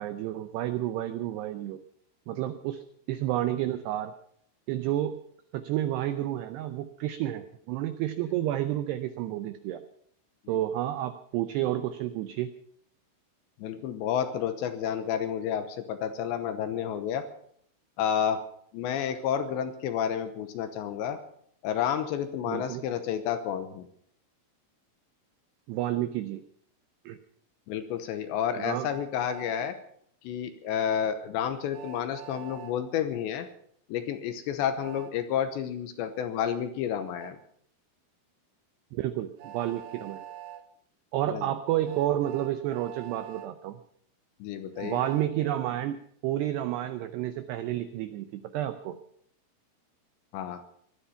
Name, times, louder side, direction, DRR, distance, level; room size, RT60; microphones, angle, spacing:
voice 1, 0.0-1.8 2.3-4.1 4.7-5.2 5.5-9.8 10.5-12.5 22.5-22.8 25.7-26.4 27.1-27.2 28.5-28.9 38.9-40.2 41.1-43.8 44.8-46.0 46.2-49.0, right 13 dB, 90° right, 9 dB, 2.3 m, -30 dB
voice 2, 13.6-17.3 18.0-18.4 18.7-21.2 21.6-23.9 27.7-29.8 30.2-33.5 33.9-37.4 41.3-41.4 44.4-45.0 50.3-50.6, left 9 dB, 75° left, 9 dB, 2.9 m, -30 dB
Train, 28.9-29.7 31.7-32.7 34.8-35.1 37.2-37.3 39.4-40.6 41.8-43.5 44.7-45.3, right 10 dB, 75° right, 3.4 m, -44 dB
18.5 x 12.5 x 5.7 m, 0.65 s
omnidirectional pair, 5.7 m